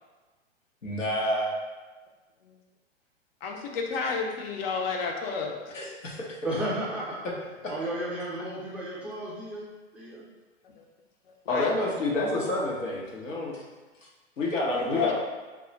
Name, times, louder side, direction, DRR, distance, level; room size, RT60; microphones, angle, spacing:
voice 1, 0.8-1.5 5.7-6.2 7.6-7.7 11.5-13.6 14.0-14.1 14.4-15.1, left 1 dB, 90° left, -3 dB, 0.9 m, -28 dB
voice 2, 3.4-5.6 10.6-10.8 11.5-11.7 14.7-15.1, left 5 dB, 50° left, 1 dB, 0.6 m, -31 dB
voice 3, 6.4-7.3 7.7-9.7 9.9-10.2 14.8-15.1, right 1 dB, 5° right, -9 dB, 0.4 m, -33 dB
2.3 x 2.1 x 3.7 m, 1.3 s
hypercardioid pair, 120°, 37 cm